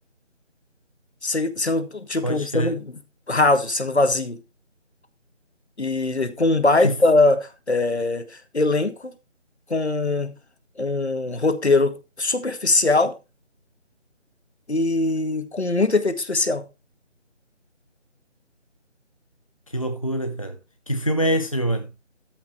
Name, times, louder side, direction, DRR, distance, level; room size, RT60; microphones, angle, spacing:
voice 1, 1.2-3.0 3.3-4.4 5.8-9.1 9.7-10.4 10.8-13.1 14.7-16.6, left 2 dB, 60° left, 2.0 m, -21 dB
voice 2, 2.2-2.7 6.8-6.9 19.7-20.6 20.9-21.9, right 1 dB, 30° left, 0.6 m, -24 dB
14.0 x 5.8 x 4.2 m
figure-of-eight pair, 160°, 36 cm